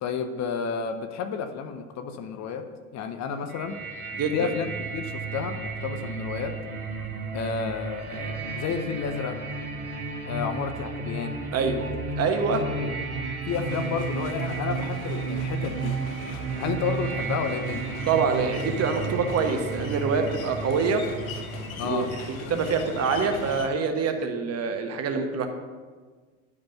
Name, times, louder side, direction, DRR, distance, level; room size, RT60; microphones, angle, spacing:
voice 1, 0.0-2.7 2.9-3.8 4.3-6.6 7.3-9.4 10.3-11.4 12.5-12.9 13.5-16.0 16.6-17.9 21.8-22.1, left 6 dB, 40° left, 7 dB, 0.8 m, -31 dB
sound 1, 3.5-23.3, right 4 dB, 85° right, 1.0 m, -33 dB
voice 2, 4.2-4.5 11.5-11.9 12.2-12.7 18.1-21.1 21.8-22.1 22.5-25.5, right 5 dB, 35° right, 6 dB, 1.1 m, -25 dB
sound 2, 13.5-23.7, left 6 dB, 75° left, 0.9 m, -41 dB
10.5 x 5.2 x 5.6 m, 1.4 s
figure-of-eight pair, 70°, 42 cm